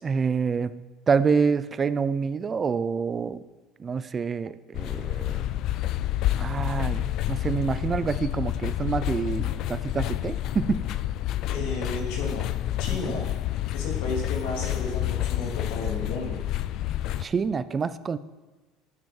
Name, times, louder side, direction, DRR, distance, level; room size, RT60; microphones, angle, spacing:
voice 1, 0.0-0.7 1.1-3.4 3.8-5.4 6.4-10.9 13.0-13.1 17.2-18.2, right 5 dB, 20° right, 15 dB, 0.5 m, -27 dB
sound 1, 4.7-17.3, left 13 dB, 50° left, 0.5 m, -29 dB
voice 2, 11.5-12.5 12.8-13.3 13.7-16.4, left 2 dB, 75° left, -1 dB, 3.4 m, -33 dB
12.0 x 9.5 x 7.2 m, 1.2 s
cardioid pair, 155°, 0 cm